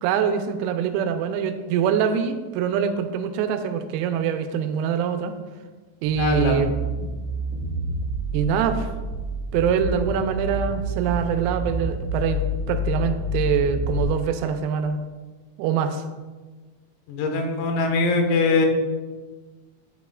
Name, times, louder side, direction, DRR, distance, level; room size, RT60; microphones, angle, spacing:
voice 1, 0.0-5.3 6.0-6.7 8.3-8.9 9.5-12.4 12.7-15.0 15.6-16.0, right 7 dB, 90° right, 7 dB, 3.4 m, -24 dB
sound 1, 6.0-14.0, equal, 65° right, 2.7 m, -28 dB
voice 2, 6.2-6.6 17.1-18.7, left 3 dB, 80° left, 4 dB, 3.6 m, -22 dB
10.0 x 9.2 x 2.4 m, 1.3 s
omnidirectional pair, 6.0 m